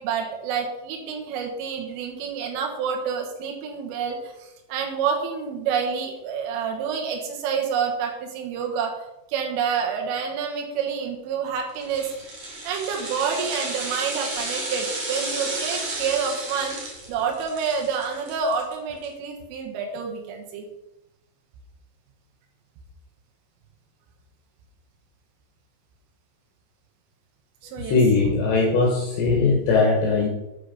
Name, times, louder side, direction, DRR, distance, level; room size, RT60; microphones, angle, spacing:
voice 1, 0.0-9.0 9.3-12.1 12.7-16.8 17.1-20.7 27.6-28.0, right 6 dB, 85° right, 1 dB, 4.0 m, -28 dB
sound 1, 11.7-19.1 19.4-19.5, right 2 dB, 40° right, 2.8 m, -32 dB
voice 2, 27.9-30.3, left 3 dB, 65° left, -2 dB, 3.6 m, -20 dB
8.8 x 8.6 x 5.5 m, 0.89 s
omnidirectional pair, 5.6 m